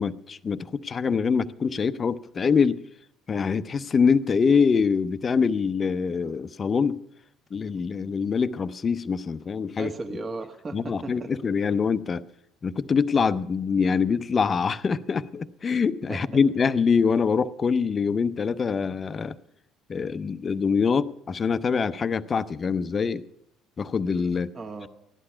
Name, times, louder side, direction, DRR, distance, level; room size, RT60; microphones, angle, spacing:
voice 1, 0.0-2.8 3.3-7.0 7.5-9.9 10.7-12.2 12.6-19.4 19.9-23.2 23.8-24.5, left 5 dB, 35° left, 0.6 m, -24 dB
voice 2, 9.8-11.3 16.1-16.2 24.5-24.9, right 3 dB, 35° right, 1.4 m, -35 dB
15.5 x 11.5 x 5.7 m
hypercardioid pair, 60°, 0 cm